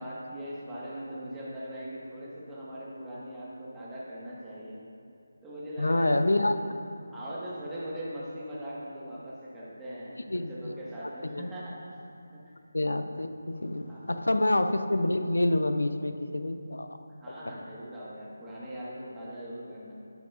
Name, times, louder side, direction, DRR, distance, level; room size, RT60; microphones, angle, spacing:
voice 1, 0.0-4.8 5.4-6.4 7.1-11.8 12.3-12.5 13.9-14.4 17.2-19.9, equal, 10° right, -9 dB, 1.6 m, -40 dB
voice 2, 5.8-6.6 10.3-10.7 11.0-11.4 12.7-16.9, left 1 dB, 80° left, 8 dB, 0.7 m, -27 dB
12.5 x 9.4 x 2.5 m, 2.6 s
figure-of-eight pair, 160°, 0 cm